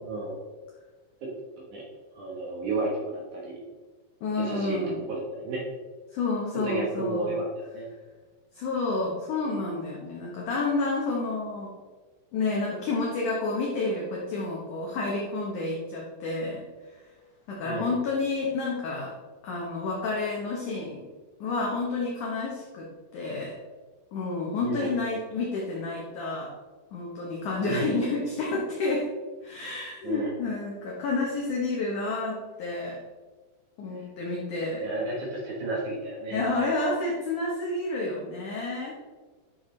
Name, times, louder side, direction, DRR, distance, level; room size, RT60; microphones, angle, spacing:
voice 1, 0.0-0.4 1.2-1.3 1.6-1.8 2.2-3.6 4.4-4.8 5.1-5.6 6.6-7.5 7.7-7.9 17.6-17.9 24.6-24.9 27.6-28.1 30.0-30.3 34.8-36.4, right 2 dB, 65° right, -3 dB, 2.1 m, -32 dB
voice 2, 4.2-5.0 6.1-7.3 8.5-11.7 12.3-17.1 17.5-19.2 19.4-21.1 21.4-23.6 24.1-26.5 26.9-29.1 29.4-33.0 33.8-34.8 36.3-39.0, left 3 dB, 70° left, -3 dB, 1.9 m, -30 dB
12.0 x 6.7 x 3.3 m, 1.4 s
omnidirectional pair, 5.2 m